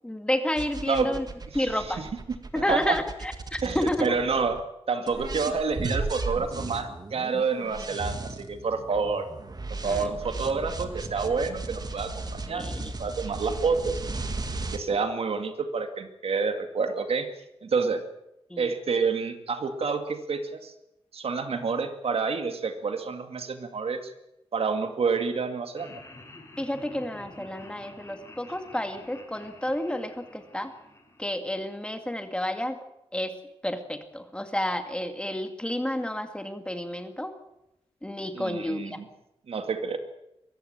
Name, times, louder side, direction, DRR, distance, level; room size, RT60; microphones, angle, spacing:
voice 1, 0.0-1.3 1.5-2.1 2.5-4.2 9.8-10.1 12.5-12.9 18.5-18.7 26.6-30.7 31.2-32.8 33.1-33.3 33.6-37.3 38.0-39.0, left 1 dB, 10° left, 7 dB, 2.1 m, -30 dB
sound 1, 0.6-4.6 5.1-14.8, right 3 dB, 40° right, 2.0 m, -35 dB
voice 2, 2.0-3.0 3.6-9.3 9.8-14.0 14.7-17.3 17.6-18.0 18.6-20.7 21.1-24.1 24.5-25.9 38.3-39.0 39.5-40.0, right 5 dB, 65° right, 7 dB, 2.2 m, -28 dB
Laughter, 25.7-31.9, left 2 dB, 25° left, 6.6 m, -49 dB
23.0 x 14.5 x 8.9 m, 0.86 s
wide cardioid pair, 120°, 11 cm